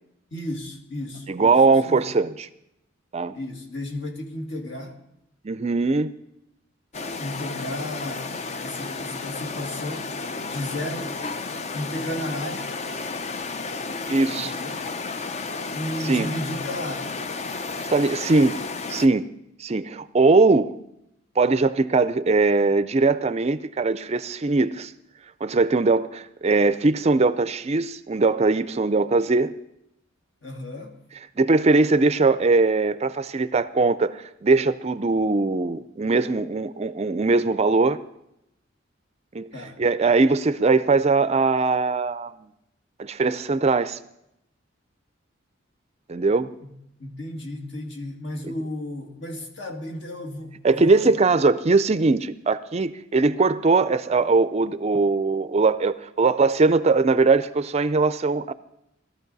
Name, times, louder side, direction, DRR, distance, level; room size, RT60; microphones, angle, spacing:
voice 1, 0.3-2.0 3.3-4.9 6.9-10.1 10.5-11.2 11.7-12.7 14.3-14.8 15.7-17.2 30.4-30.9 39.5-39.8 46.6-46.7 47.0-51.2, left 1 dB, 60° left, 2 dB, 2.1 m, -33 dB
voice 2, 1.3-2.5 3.1-3.3 5.4-6.1 14.1-14.5 16.0-16.3 17.9-18.6 18.9-19.3 19.6-20.8 21.4-24.9 25.4-29.6 31.4-38.0 39.3-39.5 39.8-42.3 43.0-44.0 46.1-46.5 50.6-58.5, right 3 dB, 35° right, 14 dB, 0.4 m, -20 dB
sound 1, 6.9-19.1, left 4 dB, 35° left, 0.5 m, -32 dB
18.5 x 13.5 x 4.0 m, 0.81 s
head